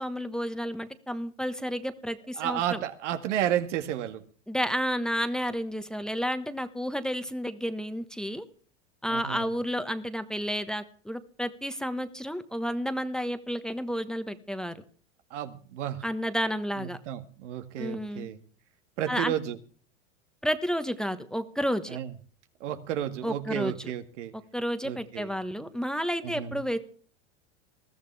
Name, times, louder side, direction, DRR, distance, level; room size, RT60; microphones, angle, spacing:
voice 1, 0.0-2.8 4.5-8.4 9.0-14.7 16.0-17.0 17.8-18.3 19.1-19.3 20.4-22.0 23.2-23.9 24.5-26.8, equal, ahead, 10 dB, 1.3 m, -31 dB
voice 2, 2.4-4.2 9.1-9.5 15.3-16.1 16.8-18.4 19.0-19.6 21.9-22.1 22.6-24.3 24.8-25.3 26.2-26.6, right 11 dB, 75° right, 9 dB, 2.0 m, -32 dB
21.0 x 14.5 x 3.5 m, 0.43 s
supercardioid pair, 120°, 36 cm